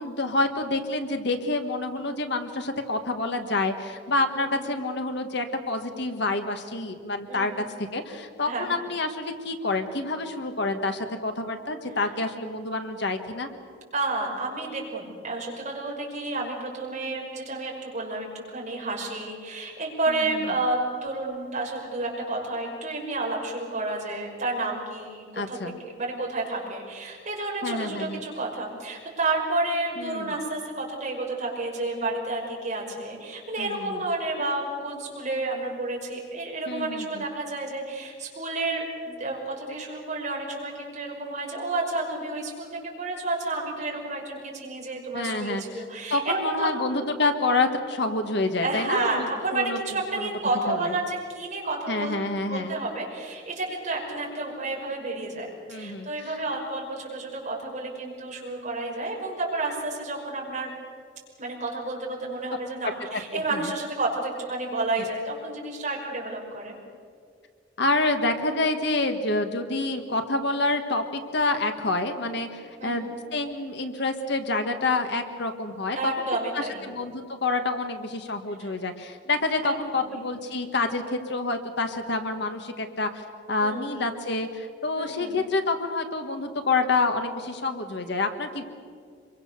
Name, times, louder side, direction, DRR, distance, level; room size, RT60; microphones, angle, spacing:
voice 1, 0.0-7.5 7.9-13.5 20.1-20.2 25.3-25.7 27.6-28.2 30.0-30.3 33.6-34.0 36.7-37.2 45.1-45.6 46.1-49.8 50.1-50.3 50.7-50.9 51.9-52.7 55.7-56.1 63.1-63.7 67.8-76.2 76.5-83.2 83.5-88.6, left 2 dB, 60° left, 7 dB, 1.7 m, -28 dB
voice 2, 4.3-4.6 7.3-7.6 8.5-8.7 13.9-46.7 48.6-60.7 61.4-66.8 72.8-73.1 76.0-76.8 78.6-78.7 79.6-79.8 80.1-80.2 83.6-84.0 85.0-85.4, right 2 dB, 40° right, -2 dB, 5.7 m, -31 dB
26.0 x 23.0 x 6.8 m, 2.1 s
head